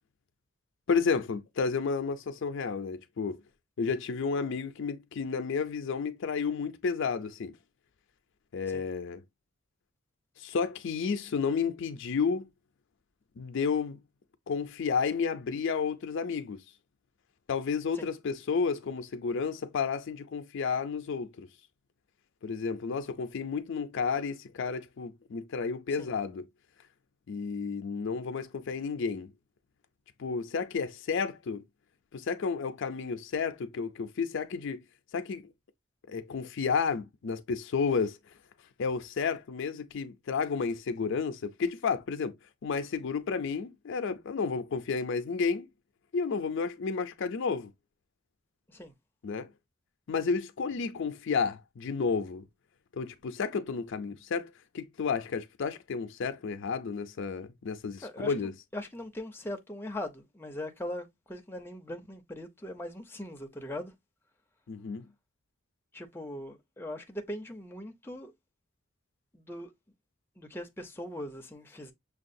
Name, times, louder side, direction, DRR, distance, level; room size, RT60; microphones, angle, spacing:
voice 1, 0.9-3.4 3.8-7.5 8.5-9.2 10.4-12.5 13.4-14.0 14.5-16.6 17.5-21.5 22.4-26.4 27.3-29.3 30.2-31.6 32.1-34.8 35.1-35.4 36.1-38.2 38.8-42.4 42.6-45.7 46.1-47.7 49.2-49.5 50.1-52.4 52.9-58.5 64.7-65.1, left 5 dB, 65° left, 0.4 m, -31 dB
voice 2, 58.0-63.9 65.9-68.3 69.3-69.7 70.4-71.9, left 1 dB, 10° left, 0.5 m, -40 dB
6.3 x 2.3 x 2.6 m
head